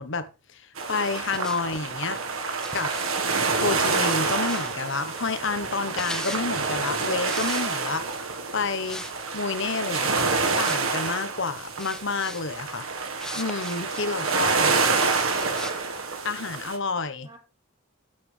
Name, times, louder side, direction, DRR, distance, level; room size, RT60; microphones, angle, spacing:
voice 1, 0.0-2.2 2.7-2.9 3.5-8.1 8.5-9.0 9.3-10.1 10.6-12.9 13.3-14.7 16.2-17.3, left 4 dB, 65° left, 1.3 m, -29 dB
sound 1, 0.8-16.8, right 4 dB, 85° right, 1.7 m, -27 dB
sound 2, 1.1-1.9 2.6-4.9 5.7-6.5 7.2-8.1 8.7-9.2 9.4-9.6 10.1-11.1 11.8-12.4 13.2-14.1 15.0-15.8, left 1 dB, 5° left, 0.5 m, -40 dB
voice 2, 17.2-17.4, right 1 dB, 20° right, 4.9 m, -49 dB
12.0 x 8.7 x 3.5 m
head